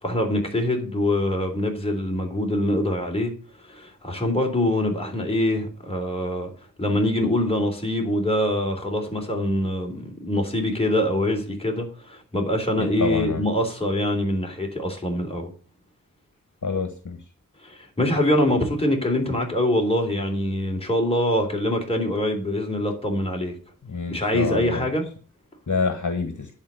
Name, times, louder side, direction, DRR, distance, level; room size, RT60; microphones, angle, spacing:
voice 1, 0.0-3.3 3.6-6.5 6.8-15.5 17.6-23.6 24.1-25.1, left 1 dB, 15° left, 3.6 m, -24 dB
voice 2, 13.0-13.4 16.6-17.2 23.8-24.9 25.7-26.5, left 4 dB, 60° left, 1.5 m, -27 dB
10.5 x 4.7 x 7.8 m
wide cardioid pair, 55°, 34 cm